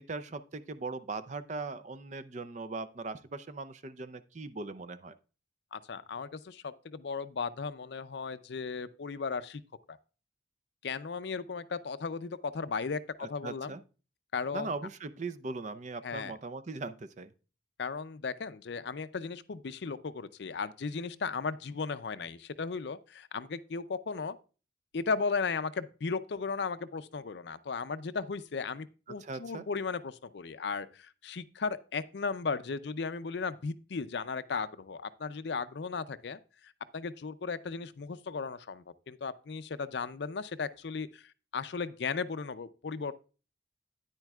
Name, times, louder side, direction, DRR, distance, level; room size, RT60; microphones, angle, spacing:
voice 1, 0.0-5.1 13.2-13.8 14.5-17.3 29.1-29.6, right 3 dB, 40° right, 0.5 m, -39 dB
voice 2, 5.7-9.6 9.9-10.0 10.8-13.7 14.3-14.7 16.0-16.3 17.8-24.4 24.9-43.3, left 5 dB, 60° left, 0.5 m, -36 dB
9.7 x 9.0 x 2.3 m
head